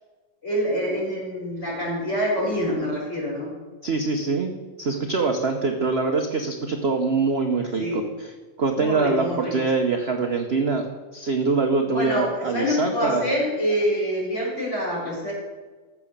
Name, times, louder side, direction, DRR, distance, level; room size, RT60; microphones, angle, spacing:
voice 1, 0.4-3.5 7.8-8.0 8.8-9.5 11.9-15.3, equal, 35° left, -4 dB, 4.7 m, -26 dB
voice 2, 3.8-4.5 4.8-10.9 11.1-13.3, right 4 dB, 45° right, 3 dB, 0.9 m, -24 dB
14.5 x 6.2 x 6.7 m, 1.3 s
omnidirectional pair, 2.1 m